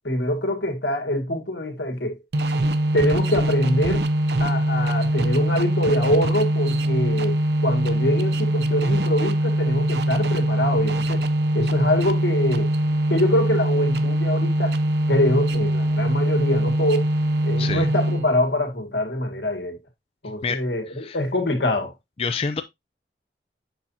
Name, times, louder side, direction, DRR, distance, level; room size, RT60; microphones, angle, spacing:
voice 1, 0.0-2.2 2.9-4.1 4.4-11.3 11.5-12.7 13.1-14.8 15.1-17.1 17.4-19.8 20.2-21.9, left 1 dB, 85° left, 1.9 m, -24 dB
sound 1, 2.3-18.5, right 1 dB, 70° right, 0.6 m, -22 dB
voice 2, 20.9-21.2 22.2-22.6, left 5 dB, 35° left, 0.4 m, -27 dB
7.4 x 5.6 x 2.7 m
head